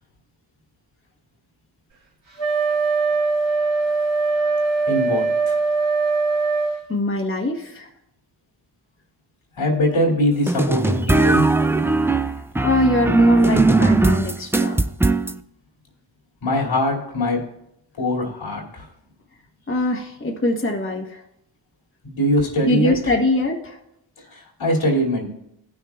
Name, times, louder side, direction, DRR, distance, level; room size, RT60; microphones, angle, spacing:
Wind instrument woodwind instrument, 2.4-6.8, right 4 dB, 75° right, 2.7 m, -21 dB
voice 1, 4.9-5.6 9.6-11.5 16.4-17.4 18.0-18.9 22.0-22.9 24.3-25.3, left 1 dB, 80° left, -2 dB, 2.7 m, -22 dB
voice 2, 6.9-7.9 12.6-14.9 19.7-21.2 22.6-23.8, left 2 dB, 25° left, 0 dB, 1.3 m, -22 dB
sound 1, 10.5-15.3, right 3 dB, 5° right, 0.3 m, -19 dB
17.5 x 6.3 x 2.4 m, 0.80 s
cardioid pair, 55°, 48 cm